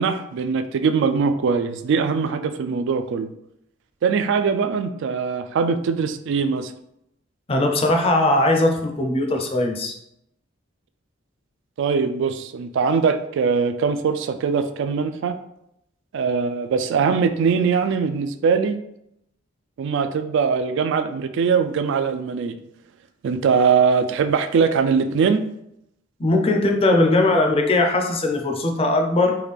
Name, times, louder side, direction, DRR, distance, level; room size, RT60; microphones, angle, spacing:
voice 1, 0.0-3.3 4.0-6.7 11.8-15.4 16.1-18.8 19.8-22.6 23.2-25.4, right 5 dB, 65° right, 9 dB, 0.3 m, -21 dB
voice 2, 7.5-9.9 26.2-29.4, left 2 dB, 30° left, 3 dB, 0.5 m, -19 dB
3.5 x 2.3 x 3.3 m, 0.78 s
head